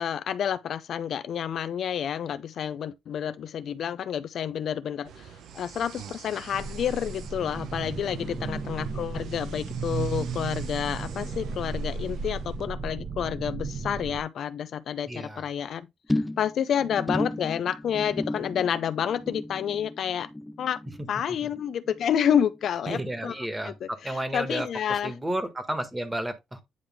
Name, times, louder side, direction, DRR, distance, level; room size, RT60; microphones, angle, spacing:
voice 1, 0.0-20.3 20.6-20.8 21.1-23.3 23.6-25.1, left 9 dB, 65° left, 0.5 m, -29 dB
sound 1, 5.0-12.7, right 8 dB, 75° right, 0.9 m, -46 dB
sound 2, 6.5-14.2, right 4 dB, 30° right, 1.1 m, -34 dB
voice 2, 8.2-8.5 15.1-15.5 21.4-21.5 22.9-26.6, right 1 dB, 15° right, 1.6 m, -32 dB
sound 3, 16.1-22.7 22.9-23.4 23.7-23.8, left 1 dB, 10° left, 0.3 m, -34 dB
9.5 x 3.3 x 3.6 m
cardioid pair, 90°, 0 cm